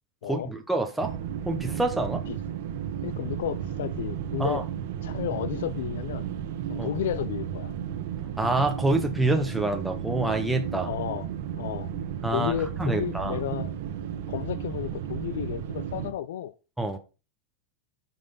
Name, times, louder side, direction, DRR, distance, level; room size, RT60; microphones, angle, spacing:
voice 1, 0.2-1.1 1.4-2.2 4.4-4.6 6.8-6.9 8.4-10.9 12.2-13.4 16.8-17.0, right 2 dB, 5° right, 0.7 m, -27 dB
sound 1, 1.0-16.1, right 9 dB, 60° right, 1.2 m, -33 dB
voice 2, 3.0-4.6 5.0-6.2 6.7-7.7 10.8-11.3 11.6-11.9 12.3-13.7 14.3-16.5, left 11 dB, 80° left, 0.5 m, -32 dB
9.0 x 5.4 x 4.1 m
supercardioid pair, 165°, 0 cm